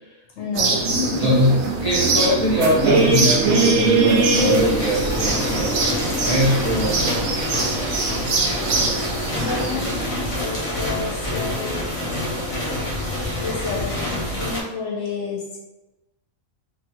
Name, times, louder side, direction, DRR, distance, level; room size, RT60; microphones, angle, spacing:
voice 1, 0.4-1.3 9.4-12.1 12.4-12.8 13.4-15.6, left 4 dB, 65° left, -2 dB, 0.9 m, -30 dB
sound 1, 0.5-10.0, right 3 dB, 80° right, 1.0 m, -22 dB
voice 2, 1.2-8.0, equal, 35° right, -9 dB, 0.6 m, -22 dB
sound 2, 1.9-11.9, left 1 dB, 90° left, 1.0 m, -32 dB
sound 3, 4.3-14.6, left 1 dB, 35° left, 0.6 m, -27 dB
3.1 x 2.4 x 2.9 m, 1.0 s
omnidirectional pair, 1.4 m